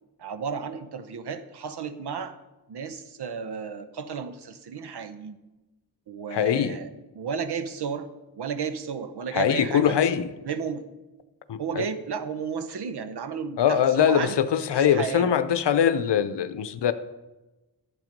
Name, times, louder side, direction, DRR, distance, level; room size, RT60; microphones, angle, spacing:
voice 1, 0.2-2.4 2.7-5.4 6.1-6.9 7.1-8.1 8.4-10.0 10.4-10.9 11.6-14.4 14.7-15.3, right 6 dB, 70° right, 12 dB, 0.9 m, -33 dB
voice 2, 6.3-6.8 9.3-10.3 11.5-11.8 13.6-16.9, left 8 dB, 75° left, 12 dB, 0.7 m, -22 dB
11.0 x 8.0 x 5.2 m, 1.1 s
cardioid pair, 65°, 42 cm